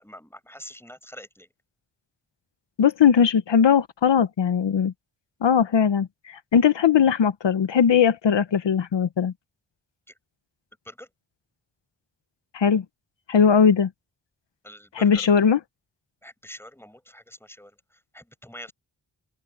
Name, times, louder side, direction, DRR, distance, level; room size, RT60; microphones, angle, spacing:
voice 1, 0.0-1.5 10.9-11.1 14.6-15.3 16.2-17.8 18.1-18.7, equal, 5° left, 5.5 m, -44 dB
voice 2, 2.8-4.9 5.4-9.3 12.5-12.8 13.3-13.9 14.9-15.6, left 7 dB, 85° left, 1.0 m, -19 dB
open air
wide cardioid pair, 80°, 42 cm